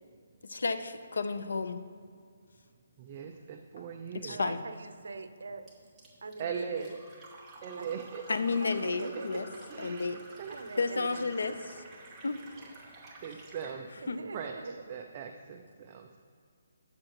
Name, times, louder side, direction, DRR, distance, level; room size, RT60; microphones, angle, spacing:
voice 1, 0.4-1.8 4.2-4.6 8.3-9.5 9.8-10.2 10.8-11.6 12.2-12.4 14.1-14.2, left 4 dB, 90° left, 11 dB, 0.6 m, -31 dB
voice 2, 3.0-4.4 6.4-6.9 7.6-8.3 8.8-8.9 9.7-10.1 10.4-10.6 13.2-13.9 14.3-16.2, right 7 dB, 20° right, 3 dB, 0.3 m, -40 dB
voice 3, 4.3-5.6 6.2-7.0 7.7-7.9 8.6-9.5 10.5-11.4 14.0-15.0, right 4 dB, 70° right, 10 dB, 0.7 m, -42 dB
Fill (with liquid), 5.7-13.8, right 2 dB, 5° right, 0.9 m, -51 dB
12.5 x 7.5 x 3.0 m, 2.2 s
hypercardioid pair, 175°, 0 cm